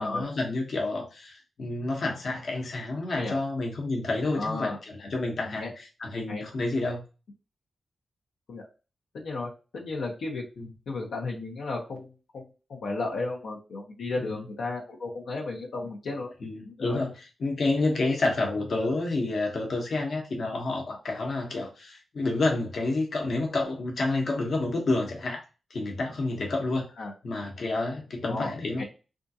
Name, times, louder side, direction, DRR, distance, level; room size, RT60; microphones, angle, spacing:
voice 1, 0.0-7.0 10.6-10.7 14.2-14.4 16.4-17.1 17.4-25.4 25.7-26.9 27.2-28.8, left 2 dB, 60° left, 0 dB, 0.9 m, -29 dB
voice 2, 4.4-4.8 5.5-5.7 6.3-6.4 8.5-8.6 9.1-10.4 10.9-12.4 12.7-16.3 16.6-17.0 27.0-27.1 28.3-28.5 28.8-28.9, left 3 dB, 85° left, -2 dB, 0.8 m, -34 dB
3.6 x 2.4 x 2.7 m, 0.31 s
wide cardioid pair, 130°, 0 cm